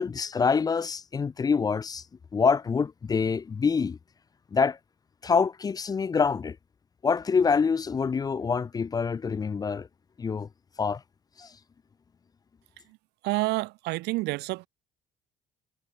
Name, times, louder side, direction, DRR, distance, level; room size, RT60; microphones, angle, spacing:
voice 1, 0.0-2.0 2.3-4.0 4.5-4.8 5.2-6.6 7.0-9.9 10.2-10.5 10.8-11.0 11.4-11.5, left 5 dB, 20° left, 0.4 m, -26 dB
voice 2, 13.2-14.7, right 21 dB, 85° right, 0.4 m, -29 dB
cardioid pair, 110°, 17 cm